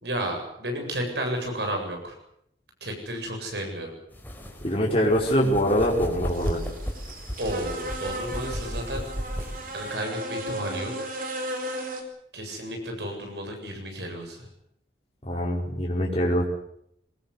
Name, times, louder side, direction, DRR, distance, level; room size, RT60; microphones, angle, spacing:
voice 1, 0.0-2.2 2.8-3.9 7.4-9.1 9.7-11.1 12.3-14.5, right 1 dB, 70° right, 3 dB, 7.8 m, -32 dB
sound 1, 4.1-9.9, equal, 10° left, 4.5 m, -35 dB
voice 2, 4.6-6.6 15.3-16.4, equal, 30° left, -2 dB, 4.7 m, -23 dB
sound 2, 6.3-12.0, right 1 dB, 50° right, 4.6 m, -35 dB
23.5 x 20.0 x 8.2 m, 0.72 s
head